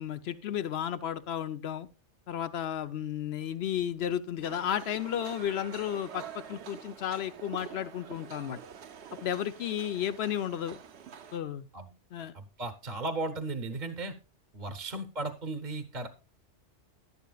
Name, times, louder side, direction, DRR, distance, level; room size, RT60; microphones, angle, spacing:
voice 1, 0.0-1.9 2.3-8.6 9.2-10.8 11.3-11.7 12.1-12.3, left 10 dB, 65° left, 0.9 m, -33 dB
sound 1, 4.4-11.4, right 8 dB, 70° right, 1.0 m, -47 dB
voice 2, 12.3-14.2 14.5-16.1, right 2 dB, 45° right, 1.0 m, -36 dB
11.5 x 11.0 x 2.3 m
omnidirectional pair, 1.2 m